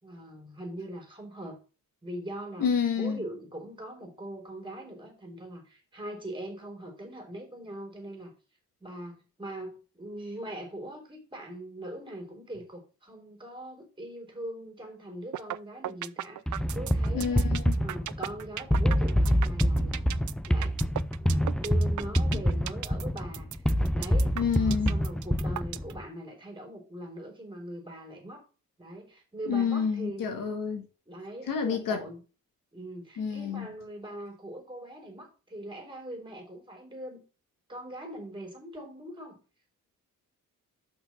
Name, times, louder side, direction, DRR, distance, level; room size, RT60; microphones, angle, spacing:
voice 1, 0.0-1.6 2.0-2.7 3.0-8.3 8.8-17.5 17.8-20.1 20.5-20.8 21.2-21.3 21.6-23.6 23.9-28.4 28.8-30.2 31.1-32.2 32.7-37.2 37.7-39.4, right 1 dB, 15° right, 3.7 m, -41 dB
voice 2, 2.6-3.2 17.1-17.8 22.3-22.4 24.4-25.0 29.5-30.9 31.5-32.0 33.2-33.7, left 6 dB, 85° left, 1.8 m, -29 dB
sound 1, 15.3-15.6 15.8-25.9, right 12 dB, 65° right, 0.5 m, -36 dB
sound 2, 16.5-26.0, equal, 5° left, 0.3 m, -26 dB
6.1 x 6.0 x 5.8 m
wide cardioid pair, 130°, 33 cm